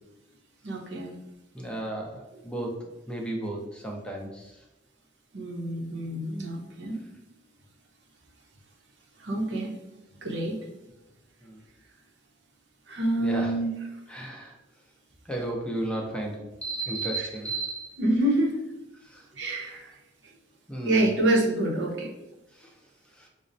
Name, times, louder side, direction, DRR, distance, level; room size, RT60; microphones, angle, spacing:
voice 1, 0.6-1.2 2.3-2.4 5.3-7.0 9.2-9.8 10.2-10.6 12.9-14.0 17.2-17.3 18.0-18.6 19.3-19.9 20.8-22.1, right 1 dB, 80° right, 1 dB, 0.7 m, -27 dB
voice 2, 1.5-2.7 3.1-4.5 11.4-11.6 13.2-13.5 14.1-14.5 15.3-18.0 19.1-19.2 20.7-21.1 23.2-23.3, right 2 dB, 5° left, 0 dB, 0.5 m, -33 dB
5.1 x 2.0 x 2.6 m, 0.97 s
head